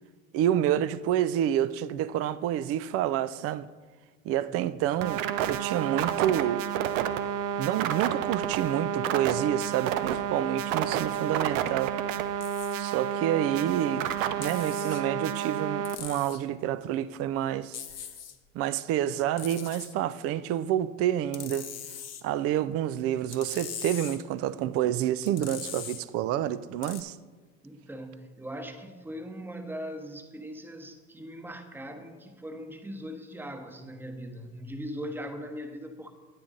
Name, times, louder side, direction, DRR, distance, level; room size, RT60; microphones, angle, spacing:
voice 1, 0.3-3.7 4.2-6.6 7.6-12.0 12.7-17.8 18.5-21.7 22.2-27.2, right 11 dB, 35° right, 0.4 m, -28 dB
sound 1, 5.0-16.0, right 9 dB, 70° right, 0.7 m, -30 dB
sound 2, 12.4-12.8 14.4-15.0 15.8-16.4 17.7-18.4 19.4-19.9 21.3-22.2 23.3-24.2 25.3-26.0 26.8-27.0, left 8 dB, 40° left, 1.0 m, -40 dB
voice 2, 27.6-36.1, equal, 5° right, 1.0 m, -40 dB
9.7 x 8.7 x 3.8 m
hypercardioid pair, 100°, 41 cm